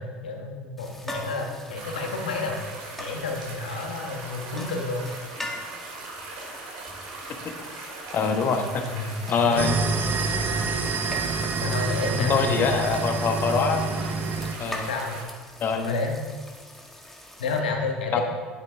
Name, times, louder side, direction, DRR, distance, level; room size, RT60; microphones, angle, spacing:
voice 1, 0.0-2.6 3.0-5.2 8.5-8.6 8.9-9.8 11.6-12.6 14.9-15.2 15.8-16.2 17.4-18.2, left 4 dB, 85° left, 2 dB, 1.2 m, -31 dB
sound 1, 0.8-17.6, equal, 5° left, 1.5 m, -43 dB
sound 2, 1.7-15.2, right 3 dB, 70° right, 2.0 m, -40 dB
voice 2, 8.1-8.9 9.3-9.8 12.2-13.8 14.6-14.9 15.6-16.0 18.1-18.2, left 5 dB, 45° left, 5 dB, 1.1 m, -24 dB
sound 3, 9.6-14.5, right 3 dB, 40° right, 0.7 m, -27 dB
9.6 x 7.9 x 3.4 m, 1.5 s
hypercardioid pair, 70°, 5 cm